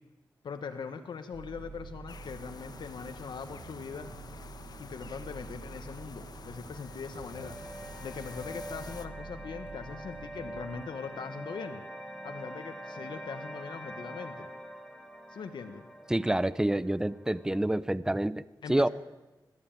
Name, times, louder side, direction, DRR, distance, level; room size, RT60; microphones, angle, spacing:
voice 1, 0.4-4.1 4.8-7.6 8.0-11.8 12.2-14.5 15.3-15.8 18.6-18.9, left 5 dB, 90° left, 7 dB, 1.6 m, -41 dB
sound 1, 1.3-10.9, right 4 dB, 85° right, 1.1 m, -48 dB
sound 2, 2.1-9.1, left 5 dB, 60° left, 1.3 m, -48 dB
sound 3, 6.7-17.8, equal, 10° left, 2.7 m, -45 dB
voice 2, 16.1-18.9, right 1 dB, 10° right, 17 dB, 0.6 m, -28 dB
21.0 x 15.5 x 9.1 m, 1.1 s
wide cardioid pair, 95°, 8 cm